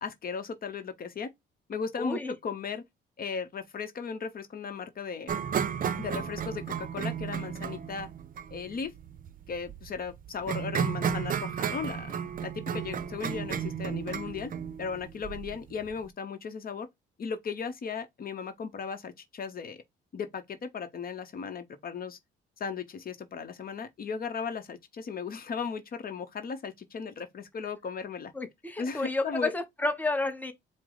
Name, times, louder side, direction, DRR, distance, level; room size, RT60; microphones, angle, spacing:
voice 1, 0.0-1.3 1.7-2.8 3.2-5.3 6.0-8.1 8.5-8.9 9.5-14.5 14.8-16.9 17.2-19.8 20.1-22.2 22.6-28.3 28.8-29.5, left 5 dB, 50° left, 0.8 m, -36 dB
voice 2, 2.0-2.3 28.3-30.5, left 2 dB, 10° left, 0.8 m, -31 dB
sound 1, 5.3-16.1, right 8 dB, 45° right, 0.5 m, -33 dB
4.7 x 2.0 x 3.8 m
cardioid pair, 90°, 20 cm